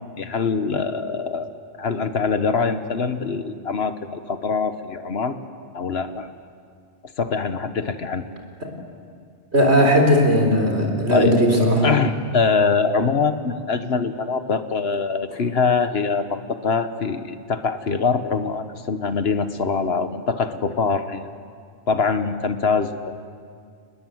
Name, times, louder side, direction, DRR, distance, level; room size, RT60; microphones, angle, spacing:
voice 1, 0.2-1.5 1.8-5.4 5.7-6.3 7.2-8.2 11.1-11.4 11.8-21.3 21.9-23.1, left 5 dB, 60° left, 9 dB, 1.3 m, -23 dB
voice 2, 9.5-11.9, equal, 65° right, 2 dB, 4.3 m, -17 dB
28.5 x 20.5 x 7.9 m, 2.2 s
omnidirectional pair, 1.2 m